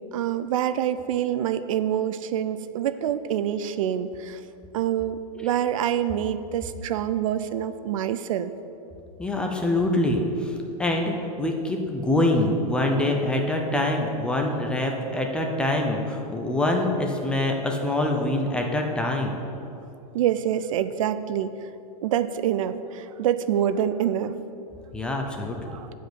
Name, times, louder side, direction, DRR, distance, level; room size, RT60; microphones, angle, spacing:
voice 1, 0.1-4.4 4.7-8.5 20.1-21.5 22.0-24.3 25.7-25.9, right 10 dB, 60° right, 12 dB, 0.5 m, -26 dB
voice 2, 9.2-19.3 24.9-25.8, left 1 dB, 5° left, 1 dB, 0.4 m, -25 dB
8.8 x 5.1 x 7.8 m, 2.7 s
supercardioid pair, 170°, 19 cm